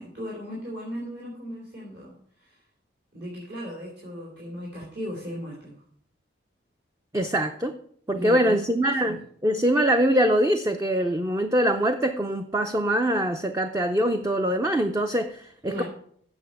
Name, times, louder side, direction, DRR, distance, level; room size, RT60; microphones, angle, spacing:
voice 1, 0.0-2.6 3.1-5.7 8.1-8.6 9.0-9.2 15.7-15.8, equal, 65° right, -5 dB, 3.2 m, -36 dB
voice 2, 7.1-7.8 8.1-15.8, right 1 dB, 15° right, 6 dB, 0.5 m, -23 dB
8.1 x 6.8 x 8.3 m, 0.63 s
head